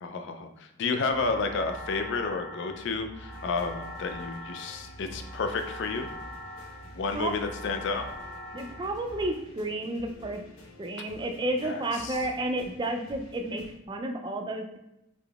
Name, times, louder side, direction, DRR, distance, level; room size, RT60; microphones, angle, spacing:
voice 1, 0.0-6.1 6.9-8.1 11.6-12.2, left 4 dB, 60° left, 6 dB, 0.4 m, -31 dB
sound 1, 1.1-9.3, equal, 15° left, 0.8 m, -42 dB
sound 2, 3.3-13.8, left 1 dB, 75° left, 0.8 m, -50 dB
voice 2, 8.5-10.4 10.8-14.8, right 1 dB, 20° right, 5 dB, 0.3 m, -31 dB
3.7 x 3.5 x 2.3 m, 0.86 s
head